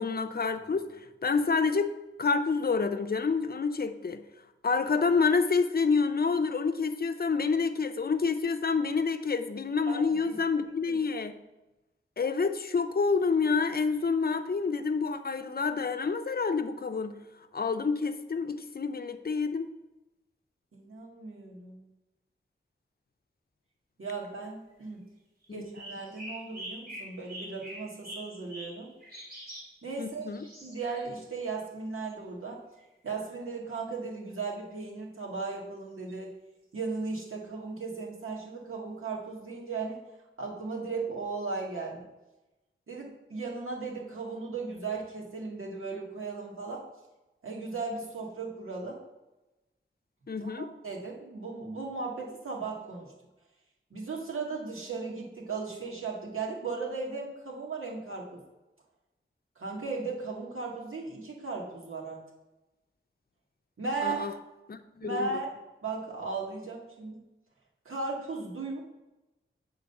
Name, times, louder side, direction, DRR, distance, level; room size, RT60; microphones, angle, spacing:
voice 1, 0.0-1.9 2.2-4.2 4.6-11.4 12.2-17.2 17.5-19.7 25.5-25.7 30.0-30.5 50.3-50.7 64.0-64.3 64.7-65.4, left 4 dB, 50° left, 8 dB, 0.6 m, -28 dB
voice 2, 9.9-10.4 10.9-11.0 20.7-21.9 24.0-25.0 25.5-28.9 29.8-30.3 30.6-32.6 33.0-36.3 36.7-40.0 40.4-42.1 42.9-46.9 47.4-49.0 50.4-53.1 53.9-58.4 59.6-62.2 63.8-64.3 65.0-65.5 65.8-67.2 67.9-68.8, right 4 dB, 90° right, -3 dB, 1.8 m, -36 dB
sound 1, 25.4-29.7 30.1-31.1 32.0-32.1 32.8-32.9 33.2-33.4 36.1-36.2 37.1-37.3, right 1 dB, 45° right, 3.1 m, -45 dB
8.3 x 3.9 x 6.5 m, 1.0 s
wide cardioid pair, 85°, 21 cm